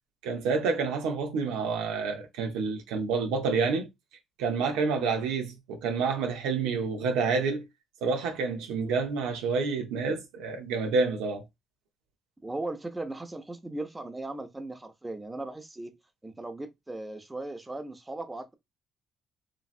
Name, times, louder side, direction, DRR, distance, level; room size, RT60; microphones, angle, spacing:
voice 1, 0.2-3.9 4.4-7.6 8.0-11.4, right 4 dB, 90° right, 0.6 m, -28 dB
voice 2, 12.4-15.9 16.2-18.6, right 2 dB, 20° right, 0.7 m, -38 dB
3.0 x 2.6 x 2.4 m
supercardioid pair, 60°, 0 cm